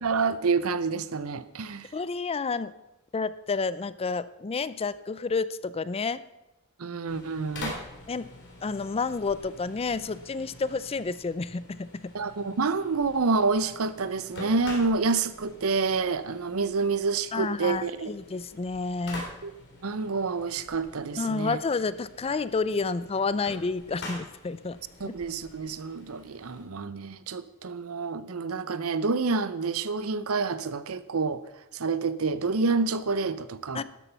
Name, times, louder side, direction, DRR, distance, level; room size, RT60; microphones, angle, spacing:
voice 1, 0.0-1.9 6.8-7.7 12.1-18.1 19.4-19.5 19.8-21.6 25.0-31.4 31.7-33.8, right 4 dB, 75° right, 15 dB, 0.7 m, -28 dB
voice 2, 1.9-2.7 3.1-6.2 8.1-8.3 8.6-12.1 17.3-19.3 21.2-24.8 25.0-25.1 33.7-33.8, left 4 dB, 25° left, 16 dB, 0.4 m, -30 dB
sound 1, 7.1-26.6, left 2 dB, 55° left, 3.6 m, -46 dB
12.5 x 11.0 x 5.7 m, 0.94 s
head